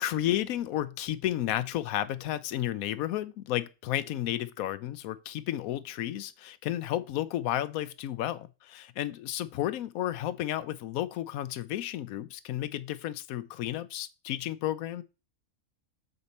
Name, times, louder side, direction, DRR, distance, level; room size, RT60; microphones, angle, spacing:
voice 1, 0.0-15.0, left 13 dB, 85° left, 1.0 m, -32 dB
6.7 x 4.9 x 4.2 m
omnidirectional pair, 1.5 m